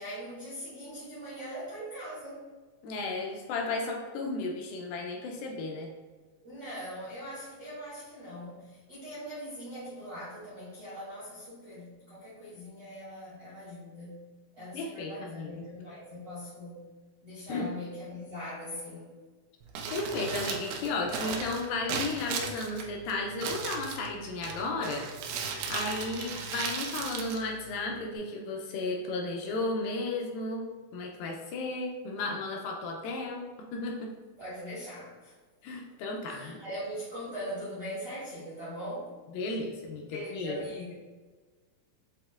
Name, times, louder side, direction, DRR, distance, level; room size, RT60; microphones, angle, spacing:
voice 1, 0.0-2.5 6.4-14.2 14.5-16.8 17.2-19.1 34.4-35.3 36.3-39.1 40.1-40.9, equal, 55° right, -11 dB, 1.0 m, -41 dB
voice 2, 2.8-5.9 14.7-15.7 17.5-17.7 19.9-25.1 25.7-30.7 30.9-34.1 35.6-36.6 39.3-40.6, left 3 dB, 80° left, 1 dB, 2.2 m, -34 dB
Crumpling crinkling, 19.6-28.2, right 5 dB, 85° right, 2.4 m, -37 dB
7.3 x 2.8 x 2.3 m, 1.4 s
omnidirectional pair, 4.2 m